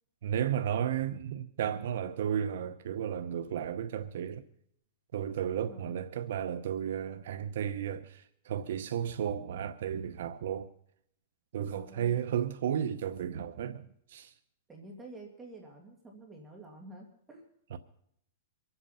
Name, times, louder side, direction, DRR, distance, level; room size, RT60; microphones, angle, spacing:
voice 1, 0.2-4.4 5.1-10.7 11.5-14.3 17.7-17.8, right 9 dB, 70° right, 0.7 m, -33 dB
voice 2, 5.7-6.0 11.7-12.2 14.7-17.4, right 2 dB, 10° right, 2.1 m, -49 dB
24.0 x 8.1 x 5.6 m
supercardioid pair, 155°, 0 cm